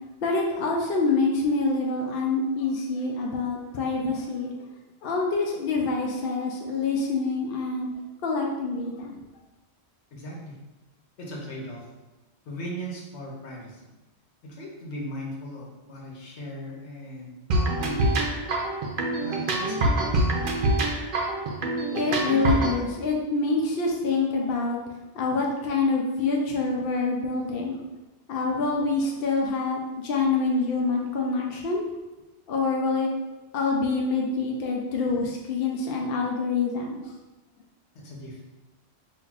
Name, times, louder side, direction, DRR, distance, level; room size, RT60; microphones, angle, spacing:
voice 1, 0.2-4.5 5.0-7.9 8.2-9.2 21.9-24.8 25.1-27.8 28.3-31.9 32.5-33.1 33.5-37.1, left 3 dB, 65° left, -1 dB, 0.7 m, -26 dB
voice 2, 10.1-10.6 11.2-11.9 12.5-13.9 14.4-18.6 19.2-20.4 38.0-38.5, equal, 85° left, -2 dB, 1.1 m, -38 dB
sound 1, 17.5-22.8, right 1 dB, 60° right, 0.7 m, -25 dB
5.5 x 2.6 x 2.4 m, 1.1 s
omnidirectional pair, 1.1 m